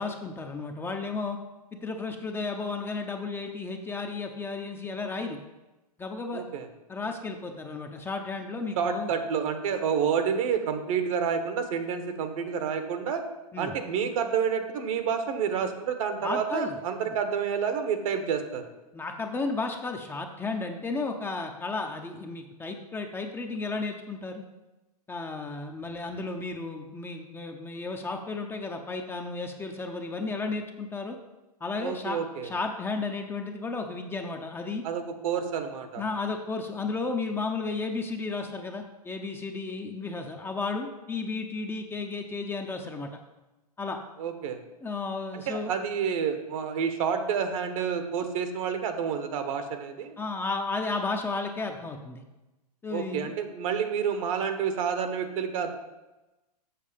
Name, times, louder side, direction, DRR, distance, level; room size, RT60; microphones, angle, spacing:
voice 1, 0.0-1.4 1.7-5.4 6.0-6.4 6.9-9.1 13.5-13.7 16.2-16.8 17.1-17.2 18.9-24.5 25.1-31.2 31.6-34.8 36.0-43.1 43.8-44.0 44.8-45.7 50.2-52.2 52.8-53.3, left 3 dB, 10° left, 3 dB, 0.7 m, -33 dB
voice 2, 6.3-6.7 8.8-13.2 13.6-18.6 31.8-32.5 34.8-36.0 44.2-44.6 45.3-50.2 52.9-55.7, right 7 dB, 55° right, 8 dB, 1.2 m, -29 dB
7.5 x 6.4 x 5.1 m, 1.0 s
hypercardioid pair, 120°, 21 cm